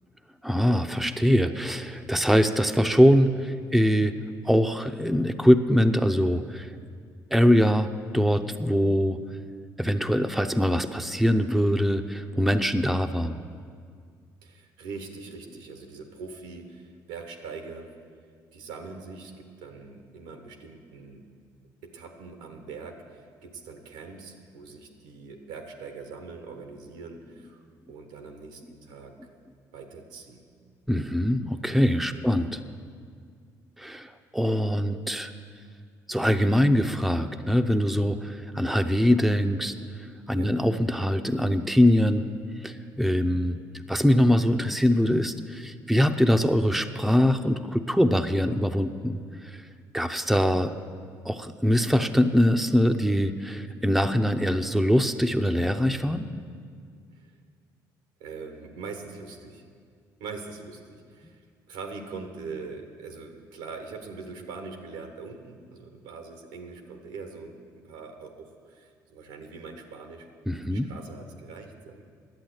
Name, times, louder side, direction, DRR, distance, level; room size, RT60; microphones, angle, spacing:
voice 1, 0.4-4.1 4.4-6.7 7.3-7.9 8.1-9.2 9.8-13.4 30.9-32.6 33.8-35.3 36.1-39.7 40.3-42.2 42.6-43.6 43.9-49.6 49.9-50.7 51.2-56.2 70.5-70.9, equal, ahead, 7 dB, 0.6 m, -23 dB
voice 2, 14.4-17.9 18.5-21.3 21.8-27.6 27.9-29.1 29.7-30.4 32.1-32.4 40.3-40.6 53.6-53.7 57.1-57.4 58.2-59.6 60.2-70.3 70.6-72.0, right 4 dB, 90° right, 5 dB, 1.2 m, -42 dB
10.5 x 8.1 x 7.9 m, 2.1 s
supercardioid pair, 65°, 9 cm